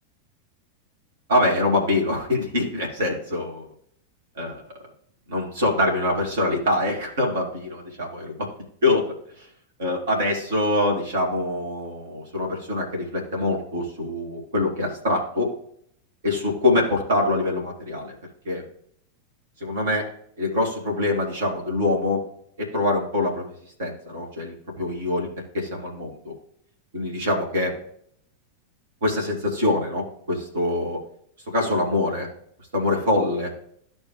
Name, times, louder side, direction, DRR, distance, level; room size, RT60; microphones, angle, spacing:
voice 1, 1.3-3.7 4.4-4.6 5.3-8.5 8.8-9.1 9.8-15.5 16.2-18.2 18.5-18.6 19.6-20.1 20.4-22.2 22.6-23.5 23.8-25.3 25.5-26.3 26.9-27.7 29.0-31.0 31.5-32.3 32.7-33.5, left 2 dB, 60° right, 0 dB, 2.3 m, -24 dB
13.0 x 4.4 x 3.3 m, 0.66 s
figure-of-eight pair, 90°, 0 cm